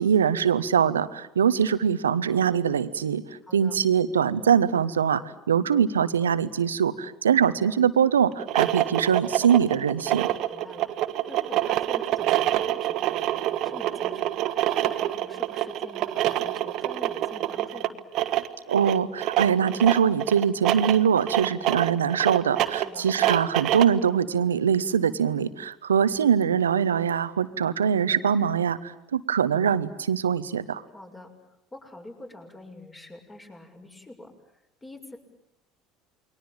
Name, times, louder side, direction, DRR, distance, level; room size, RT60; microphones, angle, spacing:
voice 1, 0.0-3.2 3.5-5.2 5.5-10.3 18.7-30.8, right 7 dB, 85° right, 14 dB, 1.1 m, -23 dB
voice 2, 3.4-3.8 10.5-10.9 11.3-18.0 22.7-23.0 30.9-31.3 31.7-35.2, left 1 dB, 20° left, 3 dB, 6.9 m, -45 dB
sound 1, 8.3-24.0, right 14 dB, 55° right, 1.5 m, -26 dB
29.0 x 22.5 x 8.9 m, 0.81 s
hypercardioid pair, 70°, 0 cm